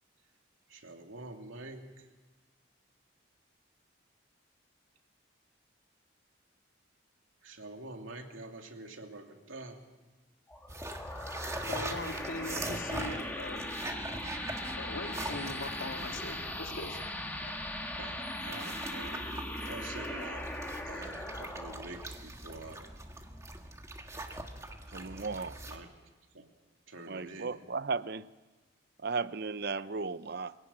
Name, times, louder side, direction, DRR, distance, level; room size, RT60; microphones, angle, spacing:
voice 1, 0.7-2.1 7.4-9.8 18.0-20.5 20.8-22.8 25.0-25.9 26.3-26.5 26.9-27.6, right 2 dB, 85° right, 3 dB, 2.8 m, -47 dB
sound 1, 10.5-23.6, left 1 dB, 10° left, 1.9 m, -40 dB
sound 2, 10.7-25.8, right 2 dB, 15° right, 1.6 m, -42 dB
voice 2, 11.7-13.6 14.8-17.0 17.4-17.5, left 2 dB, 85° left, 4 dB, 2.3 m, -41 dB
voice 3, 24.9-25.6 27.1-28.3 29.0-30.5, right 4 dB, 50° right, 15 dB, 0.6 m, -35 dB
25.5 x 17.0 x 8.7 m, 1.3 s
head